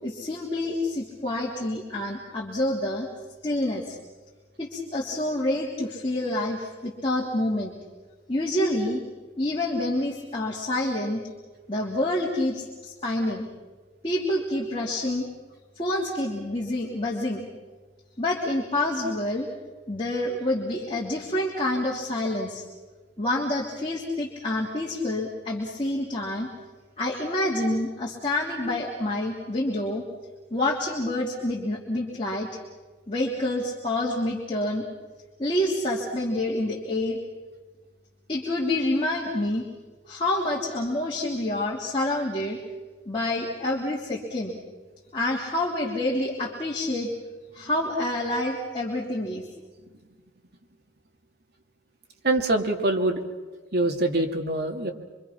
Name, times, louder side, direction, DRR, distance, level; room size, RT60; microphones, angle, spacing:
voice 1, 0.0-3.1 3.4-4.0 4.6-7.7 8.3-9.0 9.4-11.2 11.7-13.5 14.0-15.3 15.7-17.5 18.2-19.5 19.9-22.6 23.2-26.5 27.0-30.0 30.5-32.5 33.1-34.8 35.4-37.2 38.3-39.6 40.1-42.6 43.0-44.6 45.1-47.1 47.5-49.4, left 1 dB, 25° left, -4 dB, 3.2 m, -27 dB
voice 2, 52.2-53.2 53.7-54.9, right 2 dB, 55° right, 2 dB, 2.6 m, -24 dB
26.0 x 25.0 x 6.0 m, 1.3 s
head